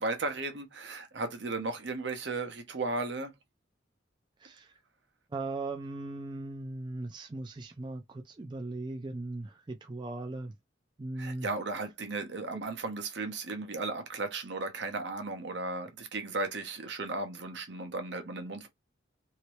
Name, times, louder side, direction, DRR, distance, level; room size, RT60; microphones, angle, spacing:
voice 1, 0.0-3.3 11.2-18.7, right 3 dB, 70° right, 0.9 m, -35 dB
voice 2, 4.4-4.7 5.3-10.5 11.0-11.5, right 2 dB, 25° right, 0.3 m, -38 dB
2.9 x 2.9 x 3.1 m
head